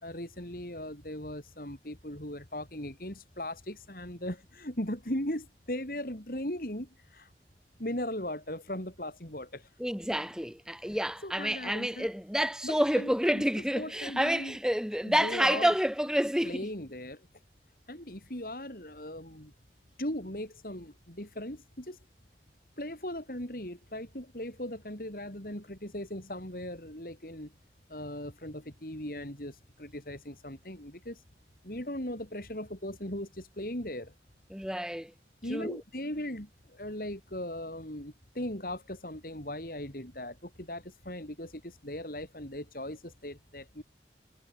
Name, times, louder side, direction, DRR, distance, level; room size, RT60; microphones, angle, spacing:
voice 1, 0.0-7.3 7.8-9.6 11.2-12.1 12.6-13.4 13.8-14.6 15.0-15.7 16.4-17.2 17.9-19.5 20.0-22.0 22.8-27.5 27.9-31.2 31.6-34.1 35.4-43.8, left 1 dB, 55° left, 5.5 m, -38 dB
voice 2, 9.8-16.6 34.5-35.1 35.5-35.8, equal, 5° right, 7.3 m, -29 dB
head